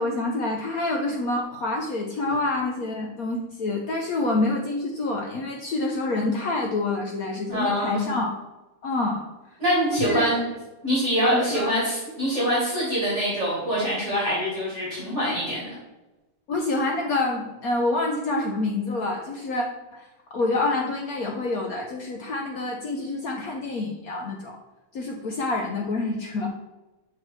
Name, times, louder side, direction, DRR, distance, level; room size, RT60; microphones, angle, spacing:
voice 1, 0.0-8.3 8.8-9.3 9.9-10.3 11.3-11.7 16.5-24.6 24.9-26.5, left 2 dB, 75° left, 1 dB, 0.8 m, -27 dB
voice 2, 7.5-8.1 9.6-10.4 10.8-15.8, equal, 35° right, -7 dB, 2.0 m, -24 dB
7.2 x 4.5 x 3.2 m, 1.1 s
omnidirectional pair, 2.3 m